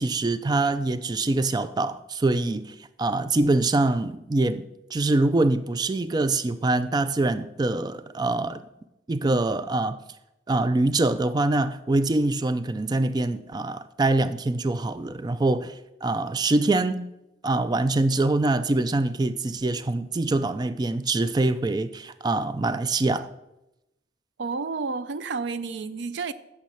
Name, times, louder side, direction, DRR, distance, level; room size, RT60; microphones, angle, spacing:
voice 1, 0.0-4.6 4.9-8.6 9.1-10.0 10.5-17.0 17.4-23.3, right 2 dB, 20° right, 0.3 m, -24 dB
voice 2, 24.4-26.3, right 4 dB, 75° right, 0.5 m, -31 dB
9.2 x 6.3 x 5.7 m
head